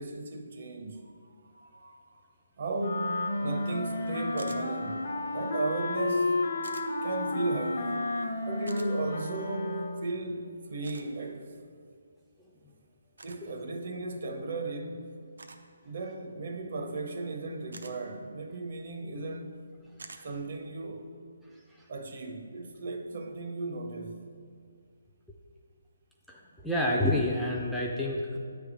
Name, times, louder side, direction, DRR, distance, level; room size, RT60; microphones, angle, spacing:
voice 1, 0.0-2.2 2.6-6.3 7.0-8.1 8.5-11.5 13.2-15.2 15.8-19.7 20.2-21.2 21.9-24.2, right 2 dB, 50° right, 0.8 m, -36 dB
sound 1, 2.8-10.1, left 2 dB, 60° left, 0.6 m, -32 dB
sound 2, 4.4-4.6 6.6-6.9 8.7-8.9 10.8-11.1 13.2-13.4 15.4-15.7 17.7-17.9 20.0-20.2, right 3 dB, 90° right, 0.6 m, -46 dB
voice 2, 26.3-28.4, left 1 dB, ahead, 0.3 m, -28 dB
8.7 x 3.4 x 4.9 m
hypercardioid pair, 170°, 0 cm